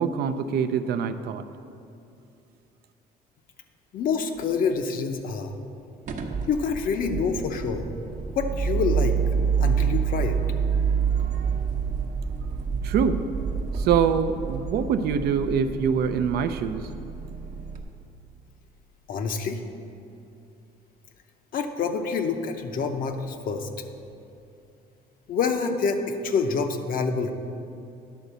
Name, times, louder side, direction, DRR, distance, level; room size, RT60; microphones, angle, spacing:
voice 1, 0.0-1.5 12.8-13.2 13.7-16.9, right 7 dB, 70° right, 10 dB, 0.5 m, -24 dB
voice 2, 3.9-5.5 6.5-7.9 8.3-9.2 9.6-10.4 19.1-19.6 21.5-23.7 25.3-27.3, left 5 dB, 55° left, 6 dB, 0.7 m, -27 dB
sound 1, 6.1-17.8, right 6 dB, 50° right, 0.8 m, -28 dB
10.0 x 4.0 x 6.7 m, 2.6 s
cardioid pair, 110°, 17 cm